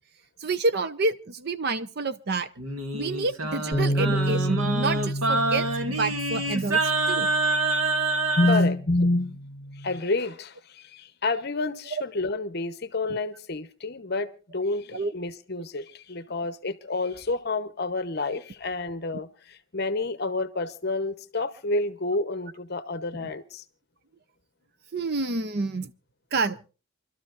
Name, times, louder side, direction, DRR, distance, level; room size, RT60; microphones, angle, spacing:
voice 1, 0.4-2.5 2.9-7.3 11.9-12.0 13.1-13.2 14.9-15.1 23.2-23.3 24.9-25.9 26.3-26.6, right 3 dB, 50° right, 0.7 m, -28 dB
Singing, 2.6-8.6, right 3 dB, 90° right, 1.9 m, -26 dB
sound 1, 3.7-10.0, equal, 10° right, 2.3 m, -31 dB
voice 2, 8.3-9.4 9.8-19.3 19.7-23.6, left 2 dB, 50° left, 0.9 m, -28 dB
28.0 x 12.5 x 2.5 m
head